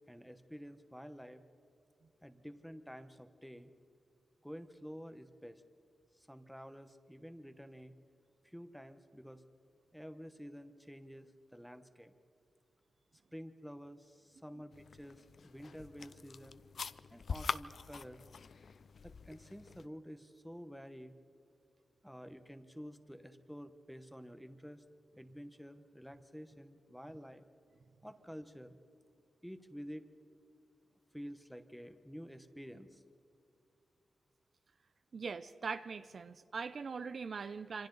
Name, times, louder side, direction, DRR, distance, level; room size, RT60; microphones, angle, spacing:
voice 1, 0.1-1.4 2.2-3.7 4.4-5.6 6.1-7.9 8.4-9.4 9.9-12.1 13.3-16.6 17.1-18.2 19.0-21.1 22.0-24.8 25.1-27.4 28.0-28.8 29.4-30.1 31.1-33.0, equal, ahead, 9 dB, 1.0 m, -50 dB
sound 1, 14.7-19.9, left 5 dB, 50° left, 0.5 m, -44 dB
voice 2, 35.1-37.9, right 5 dB, 50° right, 11 dB, 0.6 m, -41 dB
26.5 x 26.5 x 4.0 m, 2.5 s
wide cardioid pair, 155°, 0 cm